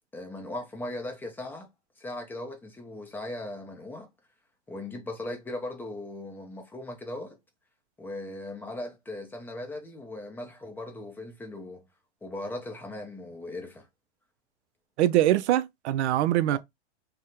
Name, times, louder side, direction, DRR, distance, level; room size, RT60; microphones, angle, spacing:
voice 1, 0.1-1.7 2.0-4.1 4.7-7.4 8.0-11.8 12.2-13.9 16.5-16.6, left 1 dB, 5° left, 0.4 m, -38 dB
voice 2, 15.0-16.6, right 13 dB, 70° right, 0.5 m, -23 dB
3.4 x 2.1 x 2.8 m
hypercardioid pair, 130°, 36 cm